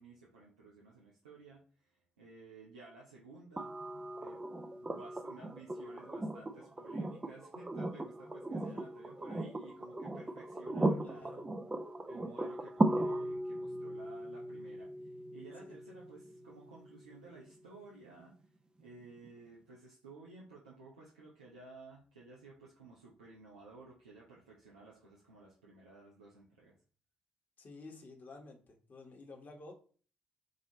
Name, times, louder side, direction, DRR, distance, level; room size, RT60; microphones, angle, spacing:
voice 1, 0.0-3.7 4.2-4.4 4.7-11.4 12.1-18.3 18.8-26.7, right 3 dB, 85° right, -5 dB, 0.7 m, -55 dB
sound 1, 3.6-17.5 19.2-19.3, right 2 dB, 20° right, 0.6 m, -37 dB
voice 2, 11.0-11.4 15.6-15.7 27.6-29.7, left 3 dB, 45° left, 1 dB, 1.2 m, -52 dB
5.0 x 2.7 x 2.8 m, 0.41 s
figure-of-eight pair, 40°, 4 cm